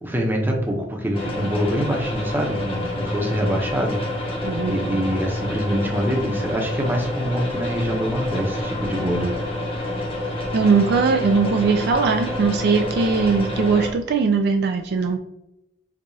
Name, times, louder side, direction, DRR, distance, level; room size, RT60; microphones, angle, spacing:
voice 1, 0.0-4.4 4.6-9.4, equal, 10° right, 1 dB, 0.7 m, -25 dB
sound 1, 1.1-13.9, left 1 dB, 30° left, 0.8 m, -28 dB
voice 2, 4.4-4.8 10.5-15.2, right 5 dB, 60° right, 6 dB, 0.3 m, -20 dB
4.7 x 2.3 x 2.7 m, 0.87 s
head